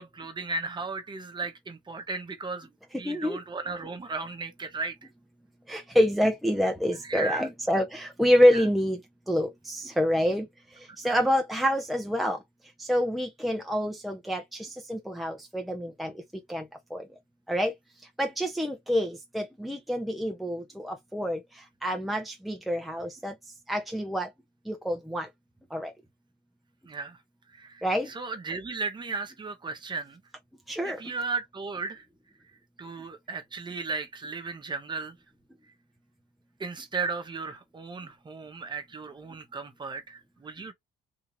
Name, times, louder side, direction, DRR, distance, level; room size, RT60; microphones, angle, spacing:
voice 1, 0.0-2.7 2.9-5.0 7.0-7.5 8.5-8.7 11.0-11.2 26.8-27.2 27.5-30.2 30.8-32.0 32.8-35.1 36.6-40.7, right 4 dB, 25° right, 1.2 m, -35 dB
voice 2, 3.0-3.4 5.7-9.0 9.3-10.5 10.7-12.4 12.8-16.2 16.5-17.1 17.5-17.7 18.2-23.3 23.7-24.3 24.7-25.3 25.7-25.9 27.8-28.1 30.7-31.0, equal, ahead, 0.8 m, -27 dB
3.6 x 2.7 x 3.1 m
cardioid pair, 110°, 17 cm